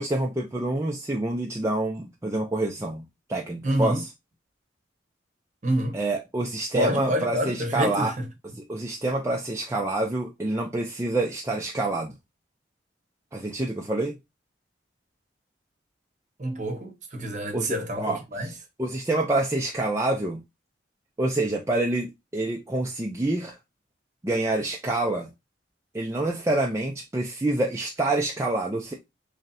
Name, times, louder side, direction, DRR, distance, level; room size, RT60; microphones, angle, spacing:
voice 1, 0.0-4.1 5.9-8.1 8.6-12.1 13.3-14.2 17.5-20.4 21.2-23.6 24.2-25.3 25.9-28.9, right 2 dB, 15° right, 0.4 m, -27 dB
voice 2, 3.6-4.0 5.6-6.0 6.7-8.3 16.4-18.5, right 1 dB, 40° right, 0.9 m, -27 dB
3.2 x 2.7 x 3.9 m
head